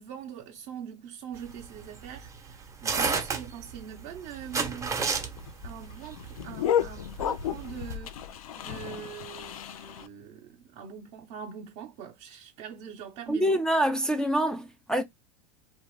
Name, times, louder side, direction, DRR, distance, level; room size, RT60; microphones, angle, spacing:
voice 1, 0.0-5.0 5.6-8.2 8.6-13.6, right 8 dB, 55° right, 0.8 m, -43 dB
sound 1, 1.4-7.9, right 5 dB, 15° right, 0.8 m, -31 dB
sound 2, 4.4-10.1, left 9 dB, 85° left, 0.5 m, -33 dB
voice 2, 13.3-15.0, right 1 dB, 5° left, 0.3 m, -25 dB
2.4 x 2.2 x 3.1 m
supercardioid pair, 115°, 18 cm